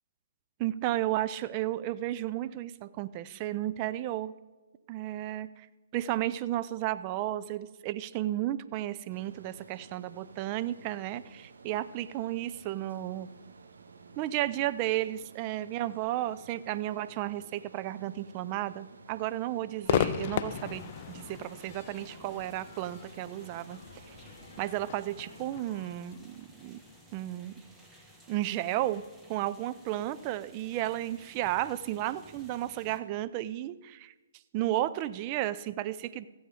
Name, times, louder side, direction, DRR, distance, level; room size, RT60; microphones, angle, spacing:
voice 1, 0.6-4.3 4.9-5.7 5.9-13.3 14.2-23.8 24.6-26.8 27.1-27.6 28.3-29.0 29.3-34.1 34.5-36.3, right 14 dB, 30° right, 13 dB, 0.4 m, -33 dB
sound 1, 9.1-25.4, right 4 dB, 65° right, 0.9 m, -54 dB
Crowd / Fireworks, 19.8-27.2, left 9 dB, 40° left, 0.5 m, -36 dB
sound 2, 20.5-33.0, equal, 5° right, 1.2 m, -57 dB
14.5 x 7.9 x 5.2 m, 1.2 s
figure-of-eight pair, 125°, 0 cm